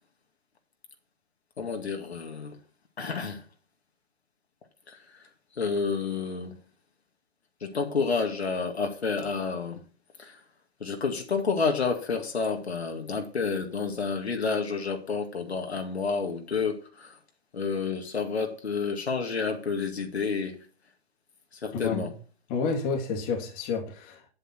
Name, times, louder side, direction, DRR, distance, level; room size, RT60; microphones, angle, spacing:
voice 1, 1.6-2.6 3.0-3.5 4.9-6.6 7.6-9.9 10.2-10.4 10.8-17.2 17.5-20.7 21.5-22.1, left 5 dB, 85° left, 2.1 m, -30 dB
voice 2, 21.7-22.1 22.5-24.3, left 4 dB, 30° left, 2.4 m, -30 dB
9.2 x 8.0 x 4.6 m
hypercardioid pair, 135°, 32 cm